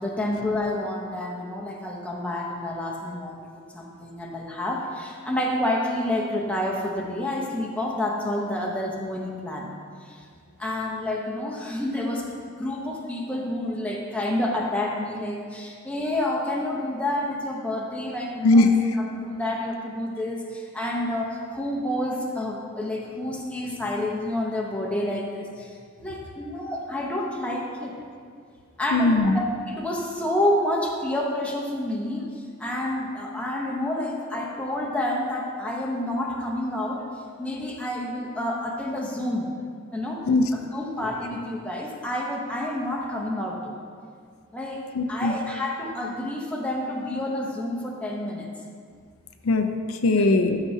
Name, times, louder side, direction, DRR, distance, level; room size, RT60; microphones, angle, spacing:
voice 1, 0.0-3.4 3.7-9.7 10.0-10.2 10.6-12.3 12.6-18.7 19.1-28.0 28.8-32.3 32.6-37.0 37.4-39.5 39.9-40.2 40.5-43.8 44.5-48.5 50.1-50.2, left 1 dB, 5° left, -2 dB, 0.9 m, -29 dB
voice 2, 28.9-29.4 40.3-40.5 44.9-45.3 49.4-50.6, left 2 dB, 90° left, 6 dB, 0.6 m, -20 dB
11.5 x 6.1 x 2.8 m, 2.1 s
head